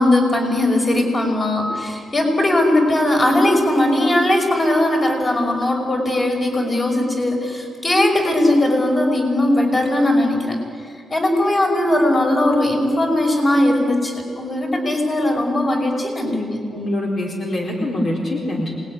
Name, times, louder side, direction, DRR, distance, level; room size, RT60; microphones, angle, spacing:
voice 1, 0.0-16.6, left 1 dB, 25° left, 2 dB, 5.5 m, -19 dB
voice 2, 16.7-18.8, left 1 dB, 50° left, -1 dB, 4.2 m, -24 dB
27.5 x 20.5 x 9.8 m, 2.2 s
wide cardioid pair, 135°, 0 cm